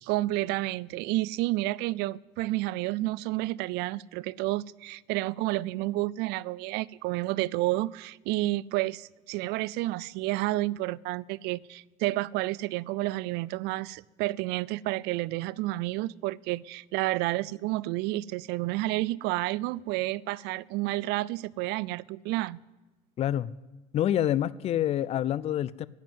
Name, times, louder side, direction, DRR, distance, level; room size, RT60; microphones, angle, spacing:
voice 1, 0.0-22.6, right 18 dB, 65° right, 24 dB, 0.4 m, -30 dB
voice 2, 23.2-23.5 23.9-25.9, left 11 dB, 35° left, 19 dB, 0.4 m, -27 dB
15.0 x 7.4 x 9.4 m, 1.2 s
supercardioid pair, 115°, 19 cm